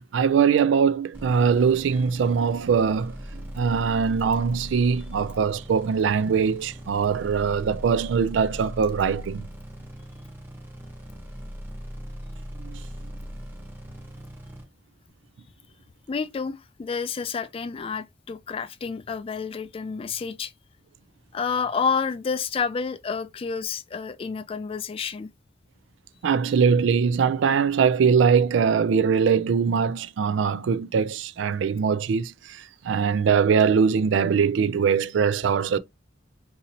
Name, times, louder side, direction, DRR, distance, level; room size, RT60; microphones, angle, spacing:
voice 1, 0.0-3.1 3.5-9.5 12.6-12.8 26.2-35.8, right 6 dB, 75° right, 0.3 m, -22 dB
sound 1, 1.1-14.6, equal, 10° right, 0.9 m, -39 dB
voice 2, 16.1-20.5 21.3-25.3, left 5 dB, 30° left, 0.3 m, -29 dB
4.0 x 2.7 x 2.8 m
head